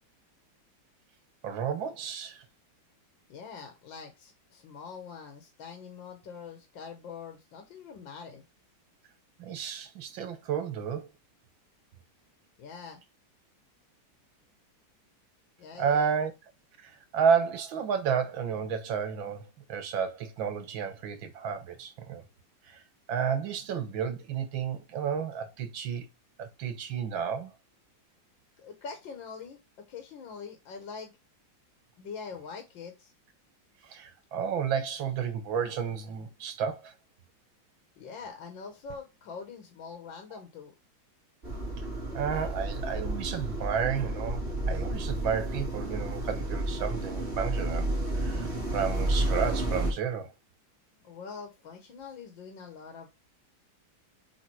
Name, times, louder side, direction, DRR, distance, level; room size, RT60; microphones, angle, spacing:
voice 1, 1.4-2.4 9.4-11.1 15.8-16.3 16.8-19.4 19.7-22.2 22.7-22.8 23.1-26.1 26.4-27.5 33.8-36.9 42.1-47.9 48.1-50.3, right 7 dB, 85° right, 1.9 m, -31 dB
voice 2, 3.3-8.4 12.6-13.0 15.6-16.1 28.6-29.6 29.9-31.1 32.0-33.1 38.0-40.7 51.0-53.1, left 5 dB, 80° left, 1.9 m, -44 dB
sound 1, 41.4-49.9, right 1 dB, 35° right, 3.3 m, -31 dB
7.6 x 3.8 x 4.6 m
omnidirectional pair, 2.1 m